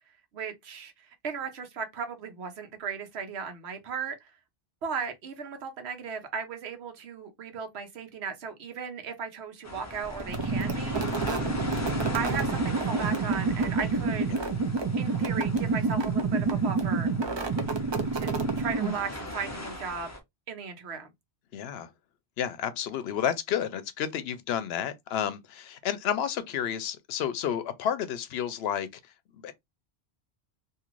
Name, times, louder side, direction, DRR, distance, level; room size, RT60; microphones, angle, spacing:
voice 1, 0.3-4.3 4.8-11.1 12.1-14.3 15.0-17.1 18.1-18.3 18.6-20.1 20.5-21.1, right 6 dB, 85° right, 1.0 m, -36 dB
sound 1, 9.6-20.2, left 1 dB, 20° left, 0.5 m, -39 dB
sound 2, 10.2-19.2, right 4 dB, 40° right, 0.4 m, -28 dB
voice 2, 21.5-21.9 22.4-29.5, left 9 dB, 80° left, 0.8 m, -31 dB
2.7 x 2.5 x 3.0 m
omnidirectional pair, 1.1 m